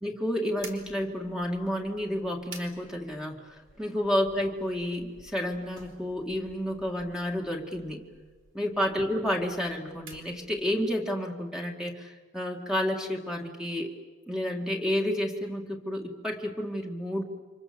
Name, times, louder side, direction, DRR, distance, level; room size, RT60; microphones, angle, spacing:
voice 1, 0.0-8.1 8.5-13.9 14.3-17.2, equal, 5° right, 1 dB, 2.1 m, -30 dB
sound 1, 0.6-10.9, right 4 dB, 65° right, 3.5 m, -52 dB
29.5 x 26.0 x 7.1 m, 1.4 s
head